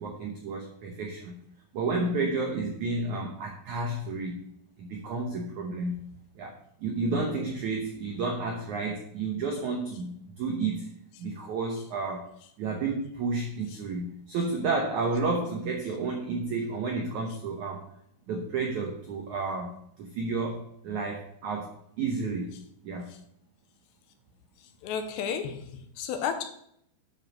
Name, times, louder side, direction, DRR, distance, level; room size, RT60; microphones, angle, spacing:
voice 1, 0.0-1.4 1.7-4.4 4.8-6.0 6.4-10.9 11.2-12.3 12.6-17.9 18.3-22.5 22.8-23.1, right 3 dB, 80° right, 2 dB, 1.7 m, -31 dB
voice 2, 24.8-26.4, left 7 dB, 80° left, 7 dB, 3.1 m, -32 dB
9.5 x 5.4 x 6.4 m, 0.70 s
omnidirectional pair, 5.1 m